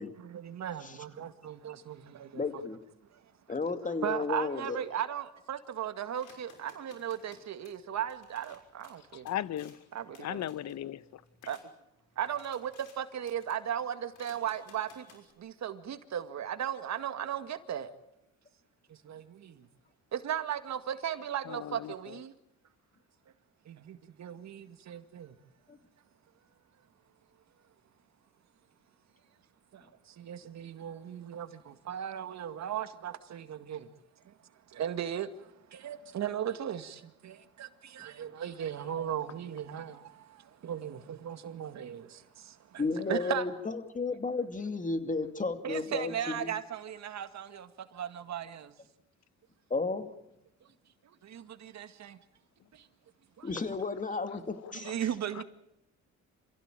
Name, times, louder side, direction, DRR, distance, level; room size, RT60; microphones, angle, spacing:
voice 1, 0.2-2.6 3.1-3.2 4.0-9.3 9.9-10.5 11.5-11.6 12.2-17.9 18.9-19.7 20.1-22.3 23.7-25.3 29.7-33.9 34.3-34.4 34.7-42.8 43.1-43.5 45.6-48.7 51.0-52.2 52.7-52.9 53.4-53.5 54.7-55.4, right 9 dB, 65° right, 2.1 m, -37 dB
voice 2, 2.3-2.8 3.5-4.8 25.7-25.8 42.8-46.5 49.7-50.1 53.4-55.0, left 3 dB, 25° left, 2.6 m, -33 dB
sound 1, 6.2-11.6 12.1-13.0 13.3-13.7 14.1-15.3, left 5 dB, 80° left, 6.1 m, -59 dB
voice 3, 9.2-9.8 10.2-11.0 21.5-21.9 54.8-54.9 55.4-55.5, left 11 dB, 65° left, 0.9 m, -36 dB
28.0 x 16.0 x 9.1 m
cardioid pair, 90°, 30 cm